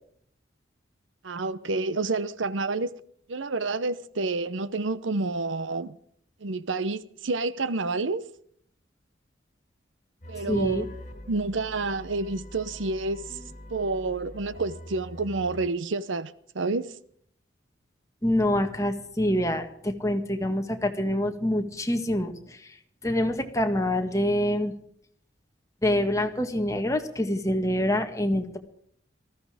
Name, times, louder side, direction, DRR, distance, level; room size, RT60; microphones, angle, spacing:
voice 1, 1.2-2.9 3.3-6.0 6.4-8.3 10.3-10.9 11.3-13.2 13.7-16.9, right 3 dB, 90° right, 0.8 m, -29 dB
sound 1, 10.2-15.7, equal, 40° left, 3.6 m, -44 dB
voice 2, 10.5-10.9 18.2-22.8 23.0-24.7 25.8-28.6, left 1 dB, 15° left, 1.7 m, -26 dB
19.0 x 15.0 x 4.9 m
head